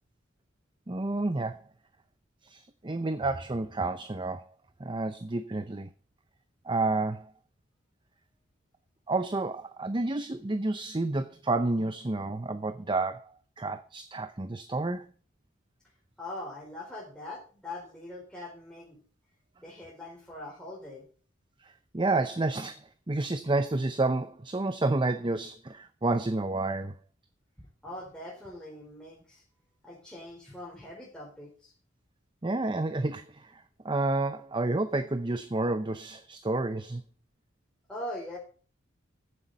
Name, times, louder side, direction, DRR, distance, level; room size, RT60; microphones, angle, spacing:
voice 1, 0.9-1.6 2.4-4.4 4.8-5.9 6.6-7.3 9.1-15.1 21.6-27.0 32.4-37.0, right 2 dB, 25° right, 0.7 m, -30 dB
voice 2, 16.2-19.0 19.6-21.1 27.8-29.4 29.8-31.7 37.9-38.4, left 1 dB, 5° left, 4.1 m, -42 dB
14.5 x 9.9 x 4.0 m
head